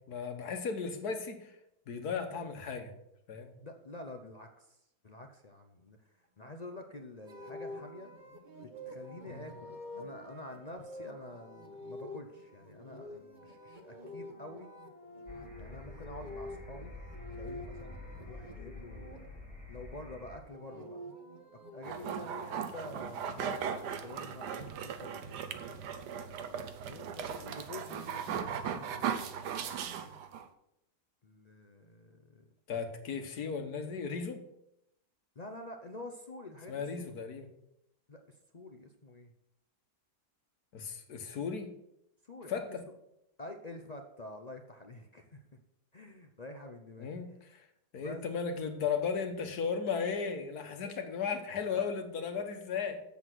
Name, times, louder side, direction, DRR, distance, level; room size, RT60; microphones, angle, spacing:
voice 1, 0.0-1.6 1.9-2.9 3.3-3.5 9.3-9.4 32.7-34.4 36.7-37.5 40.7-41.7 42.5-42.8 47.0-47.7 47.9-53.0, left 6 dB, 70° left, 6 dB, 1.7 m, -36 dB
voice 2, 3.6-4.8 5.0-6.0 6.4-8.1 8.6-14.7 15.6-16.9 17.3-19.4 19.7-21.0 21.7-25.6 26.8-29.1 31.2-32.5 35.4-36.7 37.0-37.1 38.1-39.3 42.2-42.8 43.4-45.4 45.9-47.2 48.0-48.2 50.8-50.9 51.7-51.9, left 2 dB, 45° left, 4 dB, 0.5 m, -48 dB
sound 1, 7.3-19.2 20.3-22.5, equal, 30° right, 1.2 m, -47 dB
sound 2, 15.3-20.4, left 2 dB, 5° left, 1.2 m, -47 dB
sound 3, 21.8-30.5, right 7 dB, 90° right, 1.4 m, -38 dB
8.0 x 7.1 x 6.1 m, 0.82 s
omnidirectional pair, 1.7 m